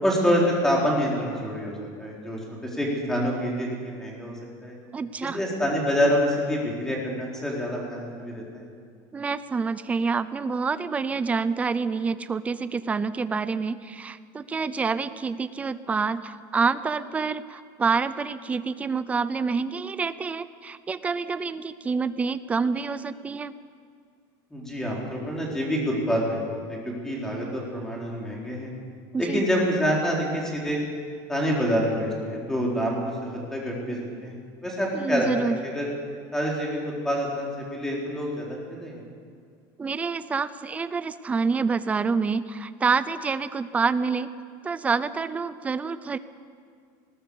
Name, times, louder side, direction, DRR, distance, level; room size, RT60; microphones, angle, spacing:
voice 1, 0.0-4.3 4.6-4.8 5.2-8.6 24.5-28.7 29.2-30.8 31.3-34.4 34.6-35.9 36.3-39.0, equal, 5° left, -3 dB, 3.9 m, -27 dB
voice 2, 4.9-5.4 9.1-23.5 29.1-29.5 34.9-35.6 39.8-44.3 44.6-46.2, right 5 dB, 15° right, 14 dB, 0.5 m, -27 dB
20.5 x 19.0 x 7.1 m, 2.1 s
cardioid pair, 170°, 11 cm